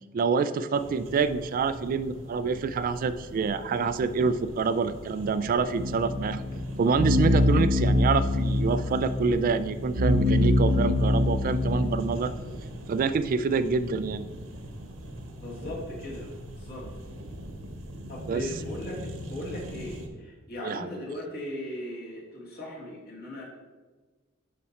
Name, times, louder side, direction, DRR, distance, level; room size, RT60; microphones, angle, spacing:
voice 1, 0.1-6.4 6.8-12.3 12.9-14.2 18.3-18.4 20.6-20.9, right 5 dB, 45° right, 13 dB, 0.3 m, -27 dB
sound 1, 0.7-20.1, equal, 80° right, 1.1 m, -41 dB
sound 2, 5.8-12.0, left 2 dB, 60° right, 0.7 m, -24 dB
voice 2, 15.4-16.3 16.6-16.9 18.1-19.0 19.3-23.4, left 1 dB, 50° left, -3 dB, 2.3 m, -38 dB
7.1 x 6.0 x 4.2 m, 1.3 s
head